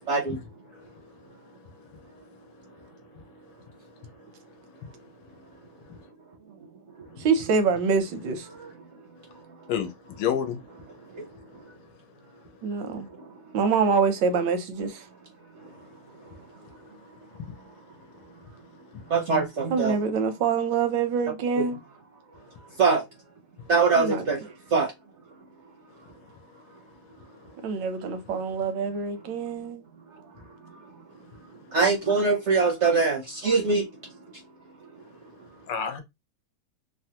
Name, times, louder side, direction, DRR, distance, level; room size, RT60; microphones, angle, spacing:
voice 1, 0.1-0.4 7.0-7.1 8.5-8.7 11.1-11.3 11.5-11.6 13.1-13.3 15.6-15.7 19.1-20.0 21.6-21.7 22.8-23.0 23.7-24.4 24.7-24.9 30.6-30.8 31.7-33.9, right 4 dB, 65° right, 0.7 m, -23 dB
voice 2, 7.2-8.5 12.6-13.1 13.5-15.0 19.7-21.8 24.0-24.3 27.6-29.8, right 5 dB, 90° right, 1.3 m, -25 dB
voice 3, 9.7-10.6 18.9-19.0 35.7-36.0, left 8 dB, 85° left, 1.3 m, -28 dB
3.4 x 2.1 x 2.8 m
omnidirectional pair, 1.9 m